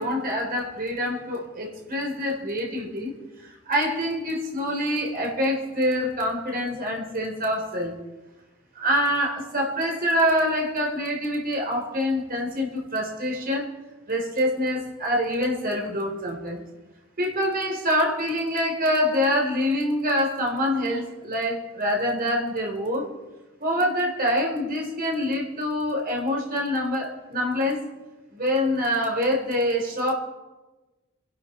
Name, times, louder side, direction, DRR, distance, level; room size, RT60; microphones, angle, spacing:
voice 1, 0.0-3.1 3.4-7.9 8.8-13.7 14.1-16.6 17.2-23.1 23.6-27.8 28.3-30.1, equal, 45° right, 3.6 m, -25 dB
26.0 x 12.0 x 4.4 m
head